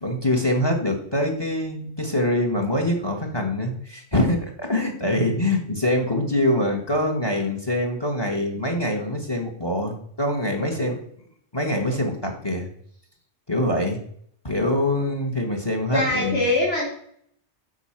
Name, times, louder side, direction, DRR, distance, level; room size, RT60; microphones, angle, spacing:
voice 1, 0.0-11.0 11.5-12.7 13.5-14.0 14.4-16.4, left 1 dB, 20° left, 4 dB, 1.4 m, -24 dB
voice 2, 15.9-16.9, left 2 dB, 85° left, -4 dB, 3.5 m, -22 dB
8.1 x 5.4 x 5.9 m, 0.64 s
omnidirectional pair, 1.2 m